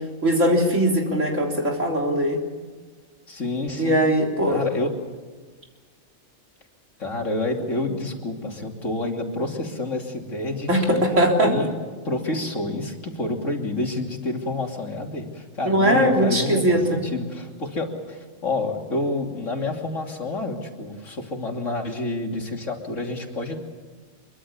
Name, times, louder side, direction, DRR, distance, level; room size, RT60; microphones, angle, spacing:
voice 1, 0.2-2.4 3.8-4.6 10.7-11.5 15.7-17.0, equal, 70° right, 1 dB, 4.0 m, -20 dB
voice 2, 3.3-4.0 4.5-5.0 7.0-11.0 11.4-11.7 12.0-23.6, left 2 dB, 70° left, 2 dB, 3.3 m, -28 dB
24.5 x 23.5 x 7.2 m, 1.4 s
omnidirectional pair, 1.4 m